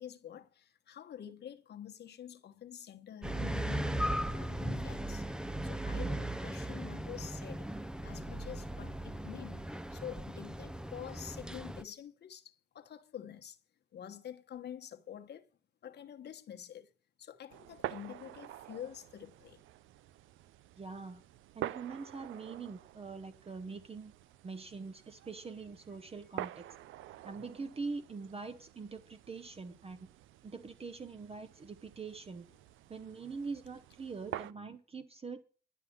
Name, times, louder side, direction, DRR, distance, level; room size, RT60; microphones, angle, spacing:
voice 1, 0.0-5.2 5.6-7.7 8.0-13.6 13.9-15.4 15.8-16.9 17.2-19.6 27.3-27.4, left 10 dB, 55° left, 1.2 m, -47 dB
sound 1, 3.2-11.8, right 1 dB, 5° right, 0.5 m, -37 dB
sound 2, 17.5-34.5, right 14 dB, 80° right, 0.5 m, -48 dB
voice 2, 20.8-21.2 21.6-24.1 24.4-26.7 27.2-30.1 30.4-32.5 32.9-35.4, right 4 dB, 30° right, 0.9 m, -43 dB
11.0 x 5.7 x 8.6 m
cardioid pair, 90°, 20 cm